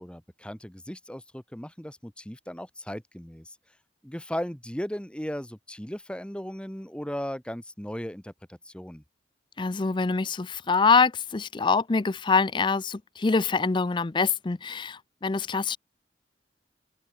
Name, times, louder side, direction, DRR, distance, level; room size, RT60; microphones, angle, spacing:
voice 1, 0.0-3.6 4.0-9.0, equal, 5° left, 1.3 m, -37 dB
voice 2, 9.6-15.8, left 4 dB, 25° left, 0.5 m, -25 dB
head